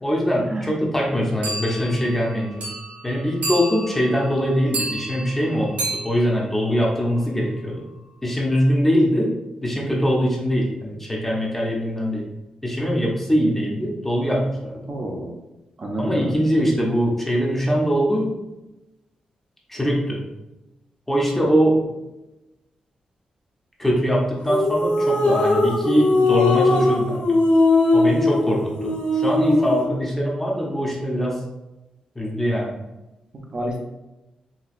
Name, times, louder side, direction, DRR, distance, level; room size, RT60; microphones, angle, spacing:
voice 1, 0.0-2.7 3.0-7.8 8.2-9.3 9.6-12.2 12.6-14.9 16.0-18.3 19.7-20.2 21.1-21.8 23.8-27.4 27.9-31.4 32.2-32.8, equal, 10° left, -2 dB, 0.6 m, -22 dB
sound 1, 1.4-7.3, right 2 dB, 85° right, 0.8 m, -32 dB
voice 2, 14.9-15.3 15.8-16.2 33.5-33.8, right 1 dB, 35° right, 0 dB, 0.6 m, -28 dB
sound 2, 24.5-29.8, left 2 dB, 60° left, 0.7 m, -19 dB
4.1 x 2.2 x 2.4 m, 0.98 s
wide cardioid pair, 145°, 2 cm